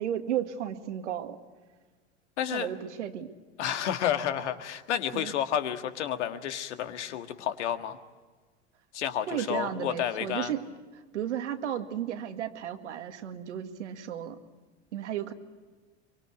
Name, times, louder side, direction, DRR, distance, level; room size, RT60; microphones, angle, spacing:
voice 1, 0.0-1.4 2.5-3.3 5.1-5.3 9.3-10.7 11.1-14.4 14.9-15.3, right 10 dB, 85° right, 6 dB, 2.0 m, -34 dB
voice 2, 2.4-2.7 3.6-8.0 8.9-10.5, left 10 dB, 75° left, 8 dB, 1.8 m, -30 dB
24.0 x 23.5 x 8.3 m, 1.4 s
hypercardioid pair, 90°, 35 cm